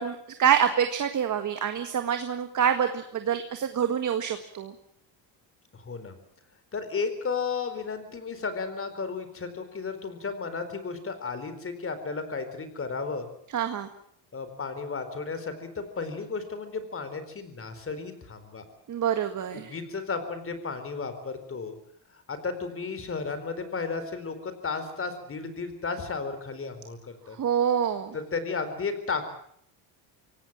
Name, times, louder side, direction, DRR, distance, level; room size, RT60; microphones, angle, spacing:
voice 1, 0.0-4.7 13.5-13.9 18.9-19.7 27.4-28.1, right 8 dB, 45° right, 7 dB, 1.8 m, -26 dB
voice 2, 5.7-6.1 6.7-13.3 14.3-18.6 19.5-21.7 22.1-27.4 28.1-29.2, left 4 dB, 30° left, 10 dB, 4.5 m, -34 dB
25.0 x 17.5 x 7.5 m, 0.66 s
cardioid pair, 110°, 44 cm